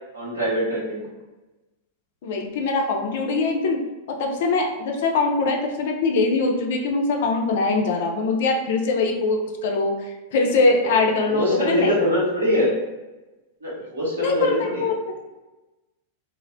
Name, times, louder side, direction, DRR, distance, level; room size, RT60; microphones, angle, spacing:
voice 1, 0.1-1.0 10.8-10.9 11.3-12.7 13.6-14.9, equal, 80° right, -6 dB, 1.0 m, -23 dB
voice 2, 2.2-3.8 4.1-11.9 14.2-14.9, left 3 dB, 60° left, 2 dB, 0.4 m, -22 dB
2.4 x 2.0 x 2.5 m, 1.1 s
hypercardioid pair, 100°, 0 cm